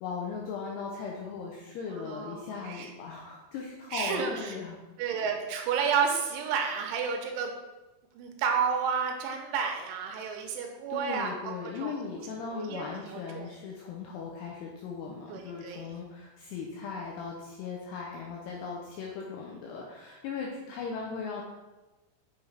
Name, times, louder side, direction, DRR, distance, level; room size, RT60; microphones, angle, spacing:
voice 1, 0.0-4.8 10.9-21.4, left 5 dB, 85° left, -1 dB, 2.5 m, -38 dB
voice 2, 1.9-2.9 3.9-4.6 5.0-7.5 8.1-13.5 15.3-15.9, right 6 dB, 90° right, 3 dB, 3.4 m, -31 dB
7.2 x 6.3 x 3.3 m, 1.1 s
omnidirectional pair, 5.4 m